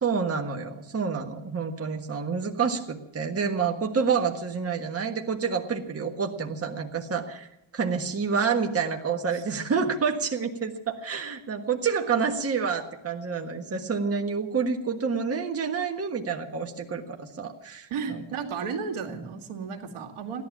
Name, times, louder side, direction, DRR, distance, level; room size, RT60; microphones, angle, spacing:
voice 1, 0.0-7.5 7.7-18.2, right 5 dB, 30° right, 3 dB, 1.5 m, -28 dB
voice 2, 17.9-20.4, right 6 dB, 85° right, 4 dB, 2.3 m, -33 dB
16.0 x 11.5 x 7.3 m, 0.84 s
cardioid pair, 135°, 49 cm